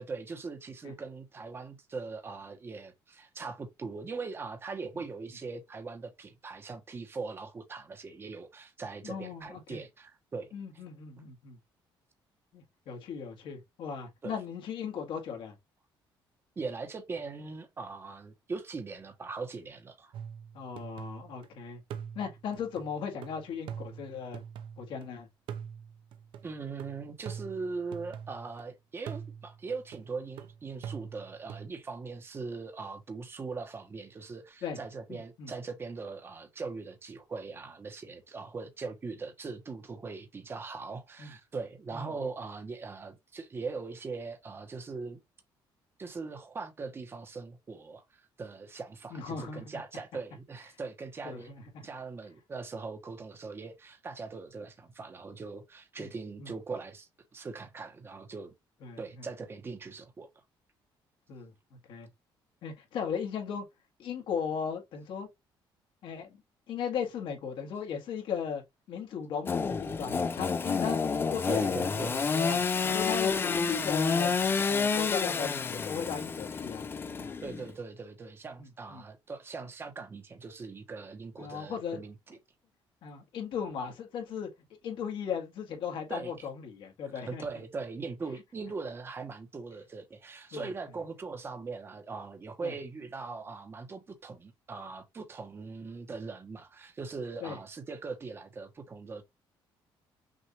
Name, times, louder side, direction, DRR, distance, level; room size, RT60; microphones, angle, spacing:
voice 1, 0.0-10.5 14.2-14.3 16.6-20.1 26.4-45.2 46.0-58.5 59.0-60.3 71.5-72.2 77.4-82.4 86.1-86.5 87.3-99.2, right 4 dB, 25° right, 1.1 m, -40 dB
voice 2, 9.0-9.8 10.5-11.6 12.5-15.5 20.5-21.8 22.2-24.4 24.8-25.3 34.6-34.8 35.1-35.5 41.2-41.3 41.9-42.1 49.1-49.6 51.2-51.9 56.0-56.1 56.4-56.5 58.8-59.0 61.3-61.5 61.9-62.1 62.6-63.7 64.0-65.3 66.0-66.4 66.7-68.6 68.9-71.0 71.3-74.3 74.7-76.8 77.2-77.4 78.6-79.0 81.4-82.0 83.0-84.5 84.8-87.4 90.5-90.7 92.6-92.7 97.4-97.6, left 7 dB, 70° left, 1.9 m, -37 dB
sound 1, 20.1-21.5 21.9-25.1 25.5-28.6 29.1-31.7, right 8 dB, 70° right, 0.7 m, -44 dB
Engine / Sawing, 69.5-77.7, left 5 dB, 25° left, 0.4 m, -29 dB
6.3 x 2.6 x 2.9 m
cardioid pair, 140°, 9 cm